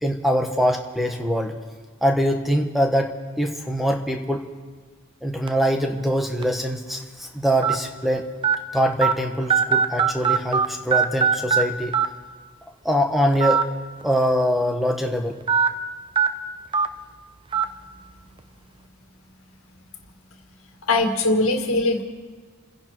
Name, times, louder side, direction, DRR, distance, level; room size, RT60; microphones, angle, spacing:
voice 1, 0.0-1.6 2.0-4.4 5.2-8.3 8.7-12.0 12.8-13.7 14.0-15.4, equal, ahead, 3 dB, 1.2 m, -23 dB
sound 1, 5.5-5.7 6.4-6.5 7.6-7.7 8.4-8.6 9.0-9.1 9.5-10.7 10.9-11.6 11.9-12.1 13.3-13.6 14.0-14.1 15.5-15.7 16.2-16.3 16.7-16.9 17.5-17.6, right 7 dB, 20° right, 0.6 m, -19 dB
voice 2, 20.9-22.0, left 2 dB, 70° left, 3 dB, 2.0 m, -20 dB
29.0 x 10.5 x 4.6 m, 1.4 s
head